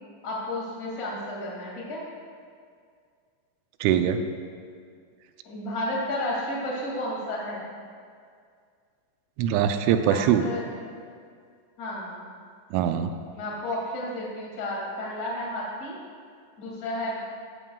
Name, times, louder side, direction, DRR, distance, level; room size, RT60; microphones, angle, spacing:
voice 1, 0.2-2.0 5.4-7.6 10.1-10.6 11.8-12.3 13.3-15.9 16.6-17.2, left 1 dB, 50° left, -4 dB, 1.1 m, -32 dB
voice 2, 3.8-4.2 9.4-10.4 12.7-13.1, right 9 dB, 85° right, 8 dB, 3.0 m, -22 dB
13.0 x 12.5 x 2.3 m, 2.2 s
omnidirectional pair, 5.5 m